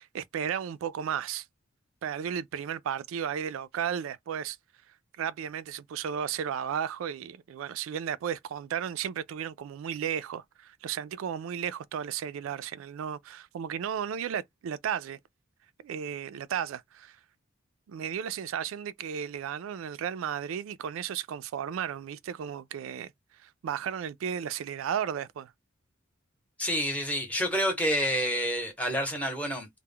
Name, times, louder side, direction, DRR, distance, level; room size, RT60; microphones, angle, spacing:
voice 1, 0.0-1.5 2.0-4.6 5.2-15.2 15.8-17.2 17.9-23.1 23.4-25.5, right 8 dB, 75° right, 0.3 m, -34 dB
voice 2, 26.6-29.7, equal, 5° left, 0.8 m, -28 dB
2.2 x 2.0 x 3.5 m
head